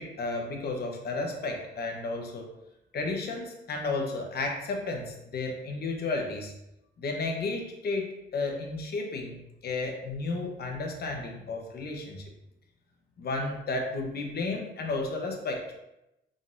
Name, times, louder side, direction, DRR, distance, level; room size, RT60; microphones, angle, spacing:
voice 1, 0.0-2.5 2.9-6.5 7.0-12.2 13.2-15.7, left 3 dB, 55° left, 2 dB, 0.9 m, -33 dB
3.9 x 3.7 x 2.5 m, 0.89 s
cardioid pair, 90°, 20 cm